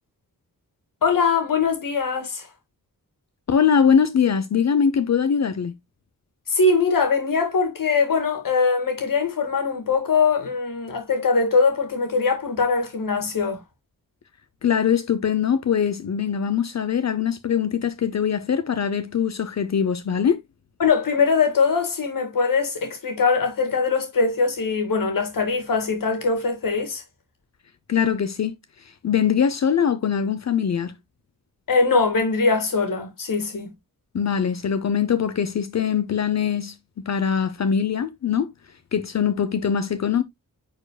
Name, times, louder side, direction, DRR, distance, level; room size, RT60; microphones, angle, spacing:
voice 1, 1.0-2.5 6.5-13.6 20.8-27.0 31.7-33.7, left 4 dB, 70° left, 2.2 m, -22 dB
voice 2, 3.5-5.7 14.6-20.4 27.9-28.6 29.0-31.0 34.1-36.7 37.1-38.5 38.9-40.2, left 7 dB, 50° left, 0.6 m, -22 dB
9.9 x 4.5 x 2.2 m
wide cardioid pair, 175°, 34 cm